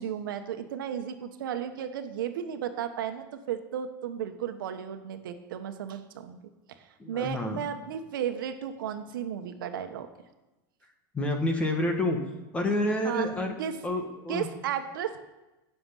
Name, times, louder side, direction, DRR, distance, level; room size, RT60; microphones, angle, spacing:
voice 1, 0.0-6.4 6.7-10.1 13.0-13.3 13.6-13.8 14.3-15.2, right 9 dB, 85° right, 8 dB, 1.3 m, -34 dB
voice 2, 7.0-7.6 11.1-12.2 12.5-13.5 13.8-14.5, left 1 dB, 10° left, 4 dB, 1.2 m, -28 dB
16.0 x 7.0 x 5.6 m, 1.0 s
supercardioid pair, 170°, 11 cm